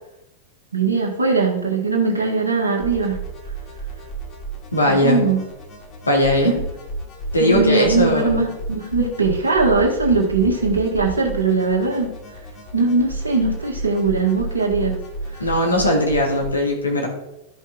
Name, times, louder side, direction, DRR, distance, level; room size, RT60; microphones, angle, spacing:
voice 1, 0.7-3.2 4.9-5.4 6.4-6.6 7.4-12.1 12.7-15.0 15.3-15.5, right 4 dB, 75° right, -3 dB, 1.6 m, -20 dB
sound 1, 2.8-16.5, right 2 dB, 35° left, 2.9 m, -32 dB
voice 2, 4.7-5.2 6.1-6.5 7.3-8.4 15.4-17.1, left 1 dB, 80° left, 1 dB, 2.1 m, -19 dB
12.5 x 5.4 x 3.9 m, 0.89 s
figure-of-eight pair, 90°, 0 cm